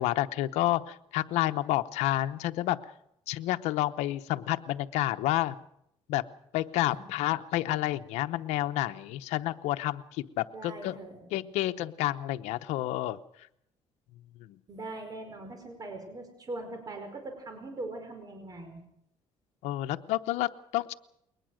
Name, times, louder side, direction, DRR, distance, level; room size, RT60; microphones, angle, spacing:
voice 1, 0.0-2.8 3.3-5.5 6.1-6.2 6.5-11.0 11.3-13.2 14.4-14.6 19.6-20.9, left 15 dB, 90° left, 9 dB, 0.9 m, -29 dB
voice 2, 6.9-7.2 10.5-11.2 14.7-18.8, right 2 dB, 35° right, 6 dB, 5.0 m, -41 dB
22.0 x 19.5 x 6.4 m, 0.75 s
cardioid pair, 105°, 11 cm